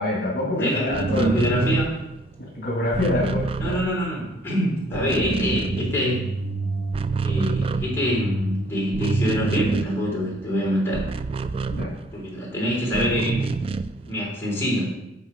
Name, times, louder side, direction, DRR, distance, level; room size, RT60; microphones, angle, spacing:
voice 1, 0.0-1.3 1.6-1.7 2.5-3.8 4.9-5.0 11.7-11.9, left 2 dB, 55° left, -4 dB, 1.9 m, -26 dB
voice 2, 0.6-1.9 3.6-6.2 7.2-11.1 12.1-13.4 14.0-14.9, equal, 15° left, -6 dB, 3.4 m, -25 dB
sound 1, 0.8-4.5 4.8-6.5 6.8-12.4 12.9-14.1, right 4 dB, 30° right, 0.3 m, -28 dB
sound 2, 5.0-11.0, right 1 dB, 55° right, 1.1 m, -31 dB
8.1 x 5.8 x 5.0 m, 0.86 s
head